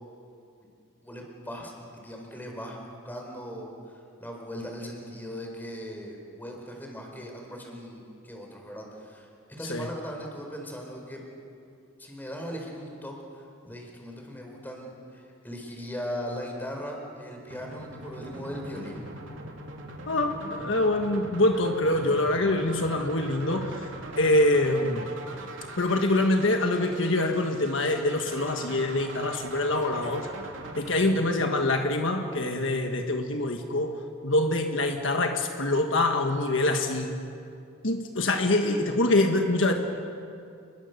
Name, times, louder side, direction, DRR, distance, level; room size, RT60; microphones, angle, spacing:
voice 1, 1.0-9.3 9.6-11.2 12.0-19.0, equal, 10° left, 1 dB, 4.4 m, -39 dB
sound 1, 17.5-32.4, right 2 dB, 70° right, 3.0 m, -42 dB
voice 2, 20.1-23.9 24.2-25.1 25.8-30.3 30.8-34.0 34.2-37.2 37.8-39.7, left 2 dB, 65° left, 4 dB, 1.5 m, -25 dB
29.5 x 22.0 x 6.8 m, 2.5 s
head